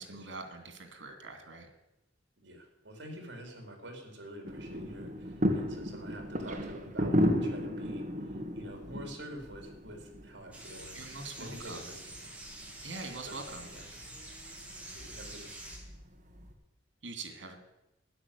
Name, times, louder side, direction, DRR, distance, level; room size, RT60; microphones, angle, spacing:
voice 1, 0.0-1.7 10.9-11.8 12.8-13.7 17.0-17.6, right 3 dB, 90° right, 6 dB, 2.5 m, -43 dB
voice 2, 2.4-11.0 11.4-12.5 13.3-13.8 14.8-15.5, right 1 dB, 65° right, 3 dB, 4.0 m, -47 dB
sound 1, 4.4-16.5, equal, 45° right, 1.7 m, -35 dB
sound 2, 10.5-15.8, right 1 dB, 5° right, 3.1 m, -47 dB
12.0 x 10.0 x 8.4 m, 0.92 s
head